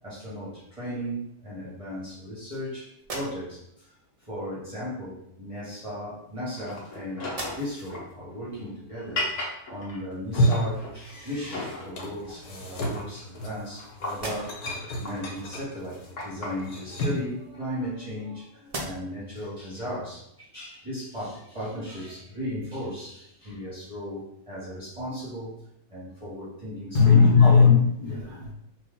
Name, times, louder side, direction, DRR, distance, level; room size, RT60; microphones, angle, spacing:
voice 1, 0.0-3.9 4.2-14.6 15.0-25.6 25.9-27.7, equal, 25° right, -8 dB, 1.0 m, -36 dB
sound 1, 3.0-3.8 4.9-5.1 6.0-6.9 7.2-8.0 8.5-8.6 11.2-11.3 11.8-12.5 13.0-13.8 14.1-14.8 16.8-18.3 18.6-19.3, right 2 dB, 45° right, 0.4 m, -41 dB
sound 2, 6.6-11.0 11.5-12.4 12.7-16.7, left 2 dB, 60° left, 1.1 m, -37 dB
sound 3, 10.1-11.5 11.8-17.3, equal, 75° left, 1.2 m, -31 dB
voice 2, 26.9-28.5, left 5 dB, 35° left, -9 dB, 1.0 m, -17 dB
3.1 x 2.6 x 3.6 m, 0.76 s
omnidirectional pair, 1.6 m